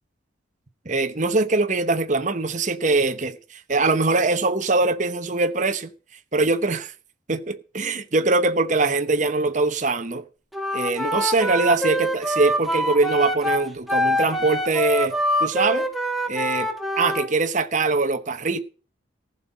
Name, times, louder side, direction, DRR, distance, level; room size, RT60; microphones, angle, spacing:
voice 1, 0.8-5.9 6.3-6.9 7.3-10.2 10.7-15.1 15.4-15.9 16.3-16.7 17.0-18.6, right 3 dB, 40° right, 1.0 m, -22 dB
Wind instrument woodwind instrument, 10.5-17.3, equal, ahead, 1.4 m, -25 dB
14.5 x 5.6 x 8.5 m
head